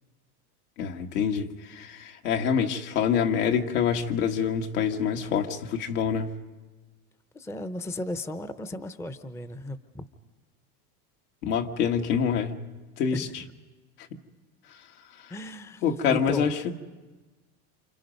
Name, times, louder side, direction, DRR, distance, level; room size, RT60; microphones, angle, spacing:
voice 1, 0.8-6.3 11.4-12.5 13.0-13.4 15.2-15.3 15.8-16.7, left 7 dB, 70° left, 3 dB, 1.9 m, -26 dB
voice 2, 7.3-10.1 13.1-13.5 15.3-15.8 16.1-16.5, left 1 dB, 5° left, 11 dB, 0.7 m, -35 dB
29.0 x 26.5 x 5.3 m, 1.3 s
supercardioid pair, 115°, 47 cm